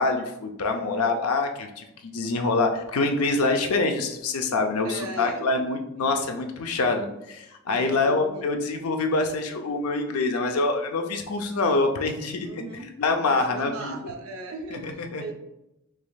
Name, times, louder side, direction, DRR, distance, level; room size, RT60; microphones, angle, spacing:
voice 1, 0.0-12.6 13.0-13.9 14.7-15.2, left 3 dB, 80° left, 4 dB, 0.5 m, -25 dB
voice 2, 0.7-1.2 4.8-5.6 6.0-6.1 7.7-8.5 12.4-15.3, right 3 dB, 70° right, 3 dB, 0.6 m, -38 dB
4.8 x 3.0 x 2.3 m, 0.89 s
head